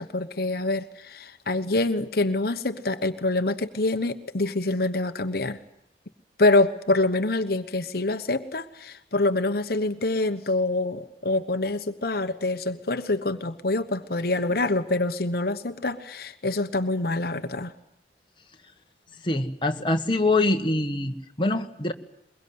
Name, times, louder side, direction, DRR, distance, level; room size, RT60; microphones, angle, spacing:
voice 1, 0.0-5.6 6.4-17.7, left 2 dB, 60° left, 8 dB, 1.2 m, -26 dB
voice 2, 19.2-21.9, left 2 dB, 30° left, 4 dB, 1.5 m, -24 dB
22.5 x 22.5 x 9.5 m, 0.74 s
head